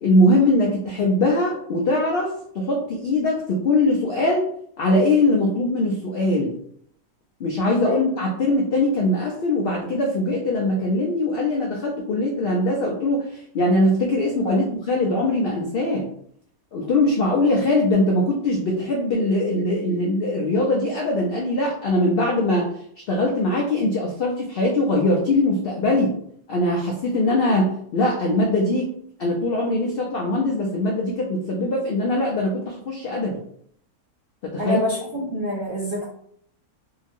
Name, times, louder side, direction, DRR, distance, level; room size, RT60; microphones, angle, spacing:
voice 1, 0.0-4.5 4.8-6.6 7.4-16.1 16.7-26.1 26.5-28.9 29.2-33.4 34.4-34.8, left 1 dB, 80° left, -1 dB, 0.5 m, -21 dB
voice 2, 34.6-36.1, left 1 dB, 70° right, -4 dB, 0.5 m, -26 dB
2.8 x 2.4 x 2.6 m, 0.66 s
omnidirectional pair, 1.5 m